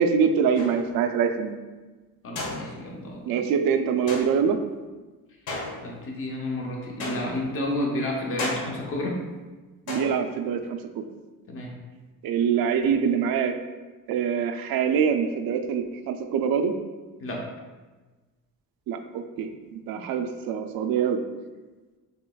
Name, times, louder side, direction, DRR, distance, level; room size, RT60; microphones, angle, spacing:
voice 1, 0.0-1.6 3.3-4.6 9.9-11.0 12.2-13.5 14.1-16.7 18.9-21.2, right 7 dB, 80° right, 7 dB, 0.5 m, -24 dB
sound 1, 0.5-1.1 2.4-3.1 4.1-4.6 5.5-6.2 7.0-7.6 8.4-9.0 9.9-10.5, left 2 dB, 80° left, 1.2 m, -35 dB
voice 2, 2.2-3.4 5.8-9.2 11.5-11.8 17.2-17.5, left 1 dB, 40° left, -1 dB, 0.8 m, -31 dB
6.6 x 3.0 x 2.3 m, 1.3 s
cardioid pair, 180°, 35 cm